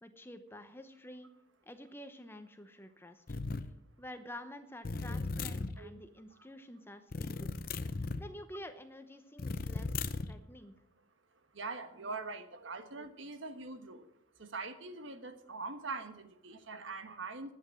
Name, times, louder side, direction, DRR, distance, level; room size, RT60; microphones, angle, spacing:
voice 1, 0.0-1.3 1.6-3.2 4.0-7.5 7.9-9.9 10.2-10.7, left 1 dB, 10° left, 8 dB, 0.8 m, -49 dB
sound 1, 3.3-3.7 4.8-5.7 7.1-8.2 9.4-10.3, left 3 dB, 45° left, 0.6 m, -36 dB
voice 2, 11.5-14.1 14.4-17.5, right 3 dB, 65° right, 9 dB, 1.3 m, -43 dB
11.5 x 8.9 x 7.6 m, 0.77 s
head